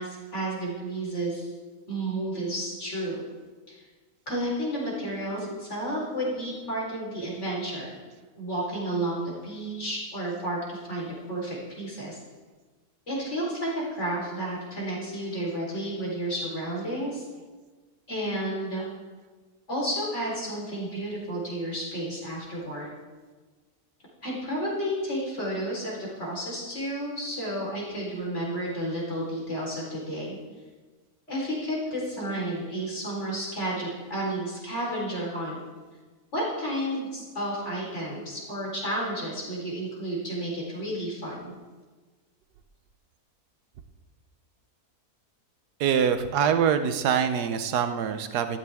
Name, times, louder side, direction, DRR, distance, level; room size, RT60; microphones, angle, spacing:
voice 1, 0.0-1.5 1.9-3.2 3.7-3.8 4.3-8.0 8.4-12.2 13.1-17.3 18.1-18.9 19.7-22.9 24.2-30.4 31.3-35.6 36.3-41.5, right 1 dB, 45° left, -4 dB, 4.5 m, -31 dB
voice 2, 45.8-48.6, right 7 dB, 90° right, 9 dB, 1.3 m, -24 dB
13.5 x 13.5 x 3.5 m, 1.4 s
omnidirectional pair, 1.7 m